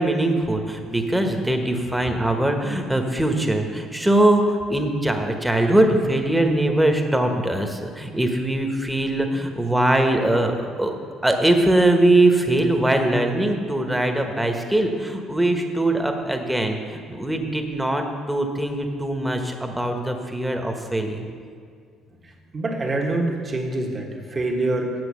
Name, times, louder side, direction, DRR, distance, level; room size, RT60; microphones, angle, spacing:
voice 1, 0.0-10.9 11.2-21.3, right 1 dB, 10° right, 4 dB, 1.2 m, -21 dB
voice 2, 22.5-24.9, right 2 dB, 35° right, 0 dB, 1.5 m, -25 dB
7.8 x 6.3 x 6.3 m, 2.2 s
supercardioid pair, 75°, 0 cm